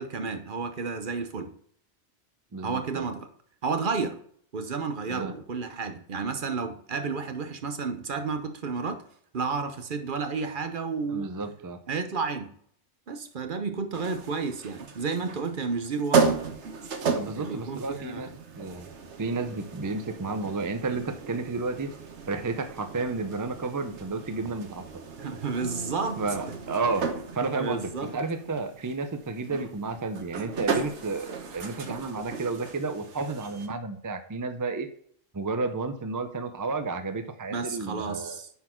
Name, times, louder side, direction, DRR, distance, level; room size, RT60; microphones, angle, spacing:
voice 1, 0.0-1.5 2.6-3.3 3.6-4.2 4.5-9.0 9.3-11.3 11.9-12.5 13.1-16.4 17.3-18.3 25.2-26.5 27.6-28.1 37.5-38.5, right 4 dB, 50° right, 7 dB, 0.9 m, -31 dB
voice 2, 2.5-3.1 5.1-5.3 11.1-11.8 17.1-18.3 18.6-18.9 19.2-21.9 22.3-24.8 26.2-27.0 27.3-34.9 35.3-38.4, right 3 dB, 25° right, 8 dB, 0.4 m, -31 dB
sound 1, 13.9-33.7, right 5 dB, 80° right, 1.3 m, -34 dB
sound 2, 25.6-29.0, right 1 dB, 50° left, 1.4 m, -44 dB
9.4 x 4.2 x 4.4 m, 0.62 s
omnidirectional pair, 1.2 m